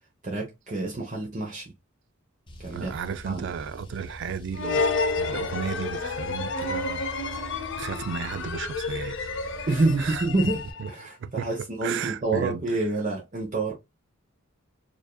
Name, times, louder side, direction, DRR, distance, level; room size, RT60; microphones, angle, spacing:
voice 1, 0.2-1.7 2.6-2.9 3.3-3.5 7.3-7.4 9.7-13.7, right 2 dB, 35° right, 0.9 m, -27 dB
Car, 2.5-10.7, left 1 dB, 25° left, 0.8 m, -44 dB
voice 2, 2.7-7.5 7.8-9.3 10.0-10.2 10.8-10.9 11.2-11.5 11.8-12.6, right 7 dB, 60° right, 0.3 m, -34 dB
sound 1, 4.5-11.0, left 3 dB, 60° left, 0.7 m, -30 dB
4.8 x 2.6 x 2.2 m
head